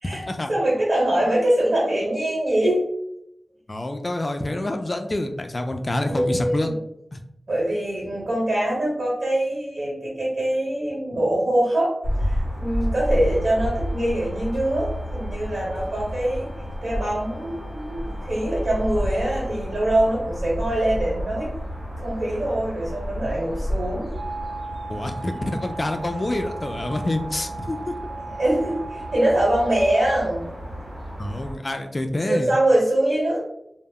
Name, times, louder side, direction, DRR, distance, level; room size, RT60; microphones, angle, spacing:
voice 1, 0.5-2.8 6.1-6.7 7.5-16.5 16.8-21.5 22.0-24.0 28.4-30.4 32.3-33.4, right 1 dB, 60° right, -6 dB, 1.1 m, -23 dB
voice 2, 3.7-6.7 7.1-7.2 24.9-27.8 31.2-32.5, left 1 dB, 30° left, 6 dB, 0.3 m, -27 dB
sound 1, 12.0-31.5, equal, 85° right, 0.9 m, -31 dB
sound 2, 12.9-19.7 24.1-30.2, right 3 dB, 45° right, 0.6 m, -40 dB
2.1 x 2.0 x 3.5 m, 0.78 s
wide cardioid pair, 110°, 0 cm